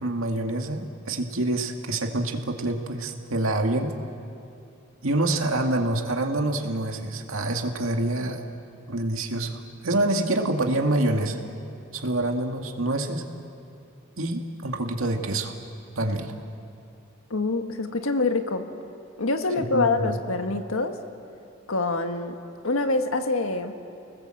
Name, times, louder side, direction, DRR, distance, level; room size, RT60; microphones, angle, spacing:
voice 1, 0.0-3.9 5.0-8.4 8.9-11.4 11.9-13.2 14.2-15.5 16.0-16.3 19.6-20.1, right 2 dB, 90° right, 3 dB, 2.1 m, -26 dB
voice 2, 17.3-18.7 19.2-21.0 21.7-22.4 22.6-23.7, left 3 dB, 90° left, 6 dB, 1.6 m, -25 dB
29.5 x 19.5 x 7.8 m, 2.6 s
head